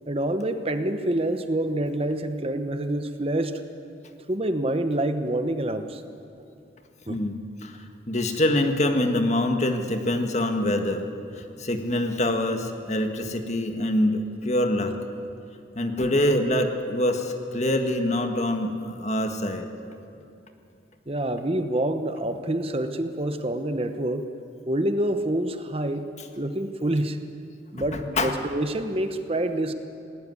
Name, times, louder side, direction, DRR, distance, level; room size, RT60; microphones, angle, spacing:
voice 1, 0.1-3.6 4.3-6.0 7.1-7.2 21.1-24.3 24.7-26.1 26.4-27.2 27.7-29.7, right 1 dB, 30° right, 8 dB, 0.9 m, -27 dB
voice 2, 8.1-11.0 11.4-14.9 15.7-19.7 27.9-28.3, left 1 dB, 35° left, 5 dB, 1.7 m, -25 dB
19.0 x 18.5 x 9.7 m, 2.6 s
head